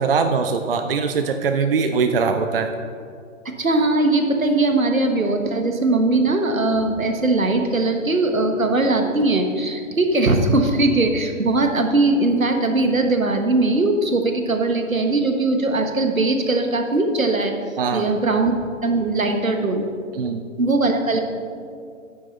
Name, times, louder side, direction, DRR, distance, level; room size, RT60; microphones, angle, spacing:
voice 1, 0.0-2.7 17.8-18.1 20.1-20.4, right 5 dB, 45° right, 7 dB, 0.5 m, -21 dB
voice 2, 3.6-17.5 17.9-18.5 18.8-19.9 20.6-21.2, right 2 dB, 80° right, 5 dB, 1.3 m, -20 dB
9.4 x 7.8 x 4.2 m, 2.3 s
figure-of-eight pair, 130°, 41 cm